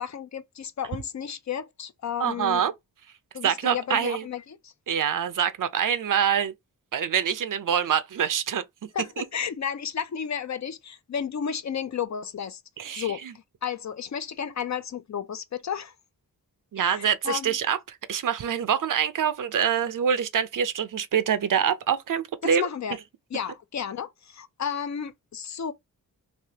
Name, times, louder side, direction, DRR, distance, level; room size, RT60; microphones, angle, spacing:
voice 1, 0.0-2.6 3.3-4.7 8.9-12.6 12.9-15.9 16.8-17.6 22.4-23.0 23.3-25.7, left 8 dB, 50° left, 0.5 m, -33 dB
voice 2, 2.2-2.7 3.4-4.2 4.9-6.5 6.9-8.6 9.2-9.3 12.8-13.3 16.7-22.7, right 8 dB, 60° right, 0.5 m, -25 dB
3.3 x 2.8 x 2.8 m
wide cardioid pair, 95°, 37 cm